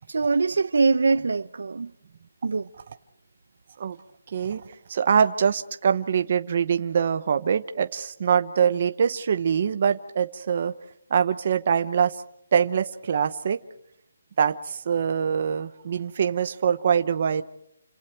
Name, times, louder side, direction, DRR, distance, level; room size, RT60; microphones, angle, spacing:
voice 1, 0.1-1.9 2.4-2.7, right 4 dB, 65° right, 0.9 m, -23 dB
voice 2, 4.3-10.7 11.1-12.2 12.5-13.6 14.4-17.4, right 7 dB, 35° right, 0.9 m, -24 dB
29.0 x 26.0 x 4.5 m
hypercardioid pair, 175°, 0 cm